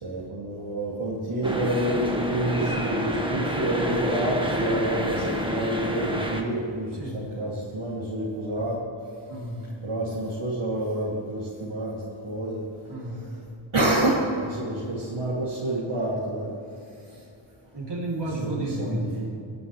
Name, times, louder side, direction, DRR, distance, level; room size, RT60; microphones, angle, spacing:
voice 1, 0.0-8.8 9.8-12.6 13.0-13.4 13.7-16.5 17.1-17.2 18.3-19.3, right 1 dB, 80° right, -8 dB, 2.7 m, -28 dB
sound 1, 1.4-6.4, equal, 10° right, 1.4 m, -28 dB
voice 2, 9.3-9.7 12.9-13.3 17.7-19.1, right 1 dB, 55° right, -3 dB, 3.1 m, -32 dB
22.5 x 10.5 x 3.3 m, 2.5 s
wide cardioid pair, 90°, 49 cm